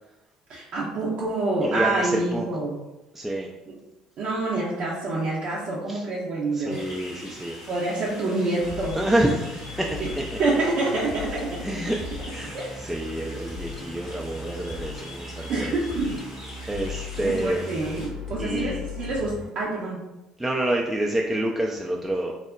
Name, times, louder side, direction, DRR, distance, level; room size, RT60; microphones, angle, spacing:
voice 1, 0.5-2.7 4.2-6.8 7.7-9.0 10.4-11.6 12.5-12.7 15.5-16.2 17.2-20.0, right 2 dB, 55° right, -6 dB, 0.5 m, -27 dB
voice 2, 1.6-2.5 3.1-3.5 5.9-6.0 6.5-7.6 8.9-10.2 11.6-12.0 12.3-15.7 16.7-17.6 18.4-18.8 20.4-22.3, right 1 dB, 5° right, -2 dB, 0.3 m, -28 dB
sound 1, 6.7-18.1, left 1 dB, 90° left, 0.7 m, -43 dB
sound 2, 8.6-19.5, left 4 dB, 10° left, 0.9 m, -38 dB
3.6 x 2.0 x 2.2 m, 1.0 s
hypercardioid pair, 55°, 2 cm